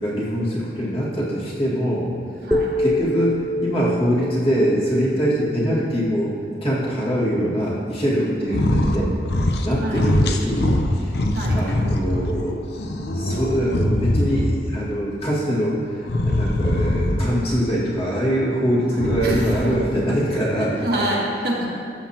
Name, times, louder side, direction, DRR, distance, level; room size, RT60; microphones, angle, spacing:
voice 1, 0.0-2.1 2.8-6.3 6.6-9.1 9.6-11.1 11.5-12.6 13.1-20.8, equal, 35° left, -7 dB, 1.9 m, -23 dB
sound 1, 2.5-6.6, left 1 dB, 5° left, 0.3 m, -27 dB
voice 2, 8.4-9.4 9.8-10.0 11.3-11.6 18.9-19.5 20.8-21.7, right 1 dB, 60° right, -4 dB, 1.6 m, -27 dB
sound 2, 8.5-9.0 9.2-9.7 9.9-12.3 12.8-14.7 16.0-17.5 18.9-19.9, left 1 dB, 65° left, 0.7 m, -22 dB
13.0 x 7.2 x 2.9 m, 2.3 s
head